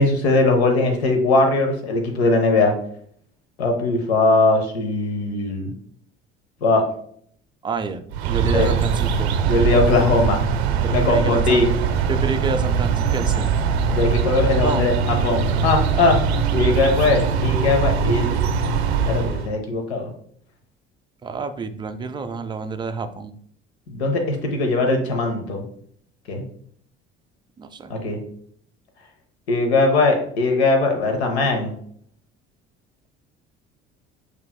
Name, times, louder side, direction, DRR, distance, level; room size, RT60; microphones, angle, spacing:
voice 1, 0.0-2.7 3.6-5.7 6.6-6.9 8.5-8.7 9.5-10.4 10.9-11.7 13.9-16.2 16.5-18.4 19.1-20.1 23.9-25.6 26.3-26.4 27.9-28.2 29.5-31.7, left 3 dB, 80° left, 4 dB, 0.8 m, -20 dB
voice 2, 7.6-9.3 10.8-11.6 12.1-13.6 14.6-15.0 21.2-23.3 27.6-27.9, right 4 dB, 15° right, 9 dB, 0.4 m, -28 dB
sound 1, 8.1-19.5, right 6 dB, 80° right, 0.5 m, -21 dB
5.4 x 3.1 x 2.2 m, 0.62 s
figure-of-eight pair, 55°, 32 cm